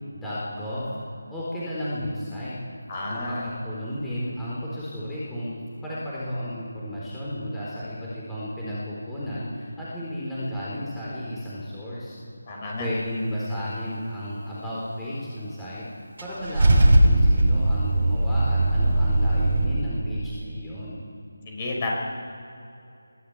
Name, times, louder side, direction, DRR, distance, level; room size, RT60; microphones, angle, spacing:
voice 1, 0.1-0.9 1.3-2.6 3.1-5.5 5.8-12.2 12.8-15.8 16.2-21.0, equal, 5° left, -9 dB, 4.1 m, -33 dB
voice 2, 2.9-3.5 12.5-12.9 21.5-21.9, left 2 dB, 30° left, -1 dB, 5.7 m, -31 dB
Car / Engine starting / Idling, 16.2-19.7, right 1 dB, 50° right, 3.5 m, -19 dB
22.5 x 12.5 x 9.2 m, 2.6 s
figure-of-eight pair, 160°, 0 cm